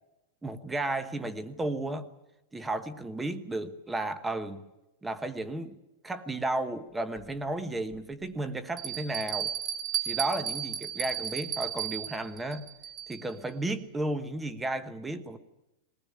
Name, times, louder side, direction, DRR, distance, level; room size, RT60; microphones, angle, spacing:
voice 1, 0.4-2.1 2.5-4.7 5.0-5.8 6.0-9.5 10.0-12.6 13.1-15.4, right 2 dB, 5° right, 12 dB, 1.1 m, -33 dB
Bell, 7.2-7.3 7.9-8.0 8.8-13.3, right 10 dB, 25° right, 2.2 m, -34 dB
21.5 x 19.0 x 9.7 m, 0.94 s
supercardioid pair, 175°, 0 cm